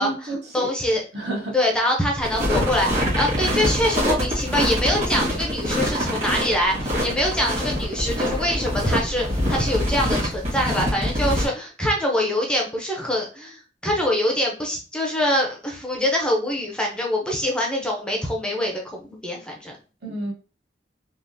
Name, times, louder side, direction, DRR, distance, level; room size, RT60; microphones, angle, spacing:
voice 1, 0.0-0.7 1.1-1.5 20.0-20.3, right 1 dB, 60° right, 0 dB, 1.0 m, -30 dB
voice 2, 0.5-1.0 1.5-19.8, left 1 dB, 5° left, 0 dB, 0.5 m, -24 dB
sound 1, 2.2-11.5, equal, 35° right, 1.5 m, -24 dB
3.5 x 2.4 x 2.6 m, 0.34 s
head